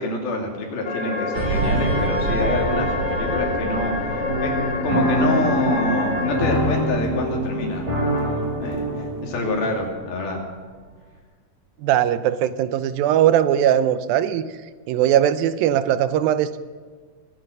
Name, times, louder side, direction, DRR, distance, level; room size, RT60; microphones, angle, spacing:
voice 1, 0.0-4.5 4.8-7.9 8.6-10.4, left 2 dB, 80° left, 1 dB, 4.5 m, -27 dB
sound 1, 0.8-6.4, left 3 dB, 50° left, 1.8 m, -27 dB
sound 2, 1.3-10.4 10.7-11.0, right 3 dB, 60° right, 2.5 m, -30 dB
sound 3, 4.3-9.9, right 1 dB, 10° right, 4.2 m, -25 dB
voice 2, 11.8-14.6 14.9-16.6, right 10 dB, 85° right, 13 dB, 2.4 m, -20 dB
22.5 x 9.4 x 6.6 m, 1.5 s
omnidirectional pair, 4.2 m